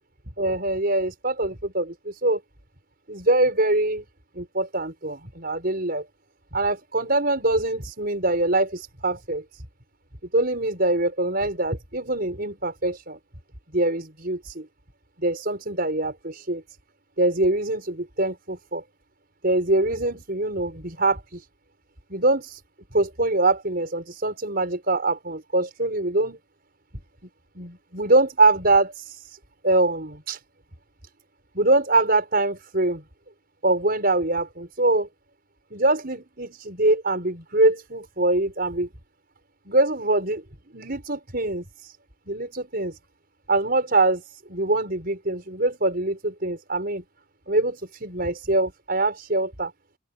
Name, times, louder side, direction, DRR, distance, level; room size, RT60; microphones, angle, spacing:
voice 1, 0.4-2.4 3.1-4.0 4.3-6.1 6.5-9.6 10.3-13.2 13.7-14.7 15.2-16.6 17.2-18.8 19.4-21.4 22.1-22.6 22.9-26.4 27.5-29.4 29.6-30.4 31.5-33.0 33.6-35.1 35.7-38.9 39.7-40.4 40.7-41.9 42.3-43.0 43.5-47.0 47.5-49.7, right 2 dB, 50° right, 6.0 m, -24 dB
open air
head